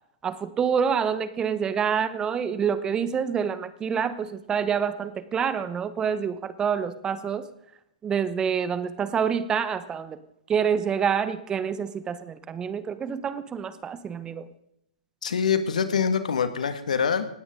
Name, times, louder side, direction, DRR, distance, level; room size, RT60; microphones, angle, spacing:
voice 1, 0.2-7.5 8.0-10.2 10.5-14.5, right 7 dB, 20° right, 14 dB, 1.1 m, -27 dB
voice 2, 15.2-17.3, left 6 dB, 75° left, 10 dB, 2.0 m, -24 dB
19.0 x 16.5 x 3.9 m, 0.76 s
hypercardioid pair, 120°, 4 cm